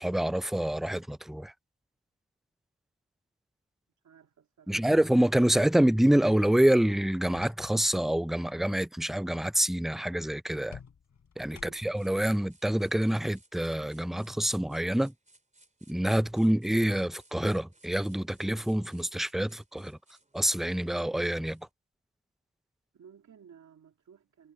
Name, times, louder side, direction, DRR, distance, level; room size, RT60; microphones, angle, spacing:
voice 1, 0.0-1.5 4.7-10.8 11.4-15.1 15.9-20.0 20.3-21.7, right 1 dB, ahead, 0.4 m, -26 dB
voice 2, 4.0-4.8 11.5-11.9 22.9-24.5, right 7 dB, 75° right, 2.1 m, -56 dB
sound 1, 6.9-8.0 8.3-8.6 10.7-12.1, left 6 dB, 75° left, 3.8 m, -51 dB
sound 2, 12.0-21.7, right 2 dB, 25° right, 3.6 m, -63 dB
cardioid pair, 50°, 29 cm